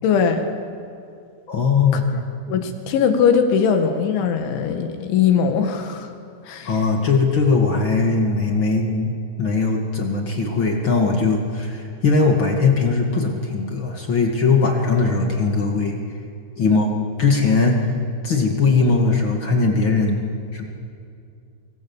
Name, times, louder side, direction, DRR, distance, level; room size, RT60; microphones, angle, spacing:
voice 1, 0.0-0.5 2.5-6.1 6.5-6.7, left 6 dB, 80° left, 6 dB, 4.1 m, -20 dB
voice 2, 1.5-2.0 6.6-9.1 9.4-16.0 16.6-16.9 17.2-20.2 20.5-20.6, left 4 dB, 60° left, 2 dB, 1.3 m, -19 dB
25.0 x 24.0 x 7.2 m, 2.5 s
omnidirectional pair, 5.4 m